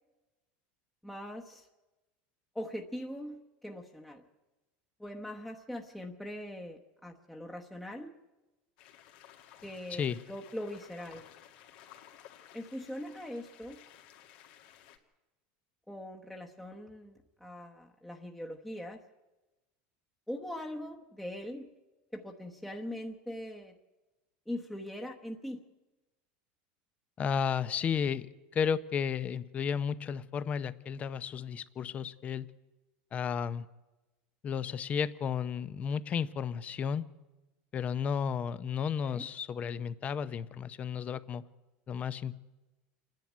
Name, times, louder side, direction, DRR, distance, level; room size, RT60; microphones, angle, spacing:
voice 1, 1.0-1.7 2.5-4.3 5.0-8.1 9.6-11.3 12.5-13.8 15.9-19.0 20.3-21.7 22.1-23.8 24.5-25.6 39.0-39.3, left 1 dB, 5° left, 0 dB, 1.0 m, -41 dB
sound 1, 8.8-15.0, left 10 dB, 75° left, 2.2 m, -56 dB
voice 2, 27.2-28.3 28.5-32.5 33.1-33.7 34.4-37.1 37.7-41.4 41.9-42.3, left 7 dB, 30° left, 15 dB, 0.7 m, -33 dB
27.5 x 10.5 x 9.3 m, 1.1 s
supercardioid pair, 140°, 5 cm